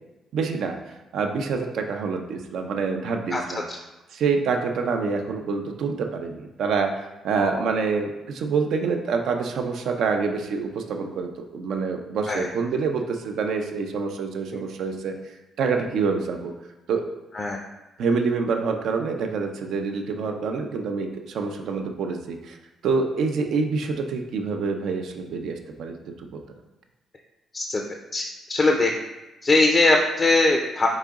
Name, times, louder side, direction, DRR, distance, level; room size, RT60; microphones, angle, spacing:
voice 1, 0.3-0.8 1.1-3.6 4.1-15.1 15.6-16.5 16.9-17.0 18.0-22.6 22.8-26.4, right 5 dB, 75° right, 4 dB, 0.5 m, -26 dB
voice 2, 28.5-28.9 29.4-30.9, left 2 dB, 35° left, 1 dB, 0.5 m, -20 dB
4.0 x 3.8 x 3.6 m, 1.1 s
cardioid pair, 90°, 0 cm